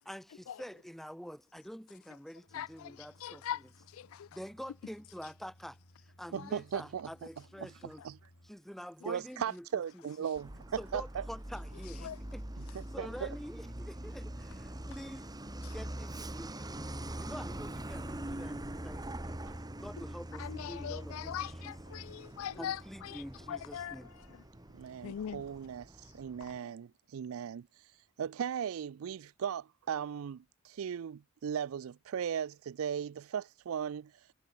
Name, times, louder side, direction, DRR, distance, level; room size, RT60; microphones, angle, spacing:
voice 1, 0.1-3.7 4.3-8.0 8.4-9.7 9.9-10.1 10.8-15.3 15.7-19.4 19.7-21.8 22.6-24.1, equal, ahead, 2.4 m, -47 dB
voice 2, 2.5-3.6 3.9-4.3 6.3-6.5 12.0-12.2 15.6-15.7 20.4-23.2 23.5-24.0 25.0-25.4, left 9 dB, 70° left, 0.3 m, -41 dB
sound 1, 2.5-8.5, equal, 55° left, 5.4 m, -62 dB
voice 3, 6.3-7.1 7.6-8.2 9.1-11.2 12.6-13.3 19.5-19.6 24.7-27.7 28.2-34.1, right 8 dB, 70° right, 0.4 m, -37 dB
Truck, 10.4-26.6, right 1 dB, 20° right, 1.7 m, -43 dB
head